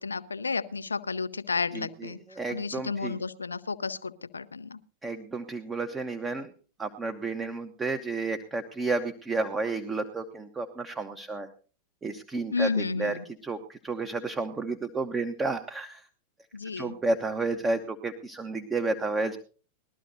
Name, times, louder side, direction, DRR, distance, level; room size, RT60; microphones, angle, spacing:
voice 1, 0.0-4.8 12.5-13.2 16.5-16.9, left 4 dB, 75° left, 0.6 m, -32 dB
voice 2, 2.4-3.2 5.0-6.5 6.8-11.5 12.0-13.1 13.4-16.0 16.8-19.4, right 3 dB, 15° right, 1.0 m, -31 dB
20.5 x 12.5 x 2.7 m
figure-of-eight pair, 90°, 0 cm